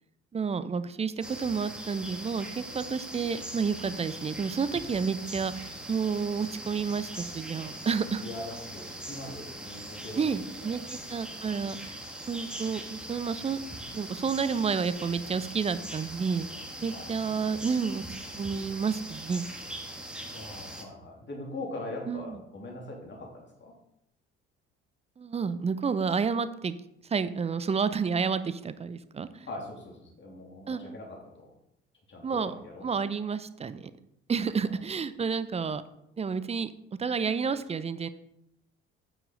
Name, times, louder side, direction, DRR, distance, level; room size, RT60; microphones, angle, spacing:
voice 1, 0.3-8.2 10.2-12.0 12.3-13.6 13.9-16.5 16.8-19.4 22.1-22.4 25.2-26.7 27.1-29.5 30.7-30.8 32.2-32.5 32.8-33.9 34.3-35.8 36.2-36.7 37.0-38.1, right 5 dB, 20° right, 14 dB, 0.6 m, -30 dB
sound 1, 1.2-20.8, right 1 dB, 5° right, 1.6 m, -41 dB
voice 2, 8.2-10.3 10.6-10.8 16.9-17.8 20.3-23.7 29.5-31.5 32.1-32.8 34.7-34.8, left 2 dB, 30° left, -1 dB, 3.0 m, -42 dB
8.8 x 7.2 x 3.9 m, 0.83 s
figure-of-eight pair, 50°, 35 cm